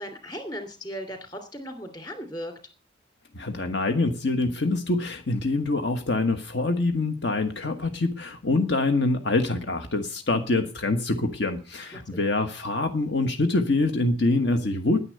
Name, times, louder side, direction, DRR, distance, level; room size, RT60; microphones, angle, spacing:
voice 1, 0.0-2.5 11.9-12.0, equal, 20° left, 7 dB, 2.8 m, -37 dB
voice 2, 3.3-15.0, left 2 dB, 60° left, 6 dB, 1.4 m, -25 dB
10.5 x 10.0 x 7.8 m, 0.35 s
head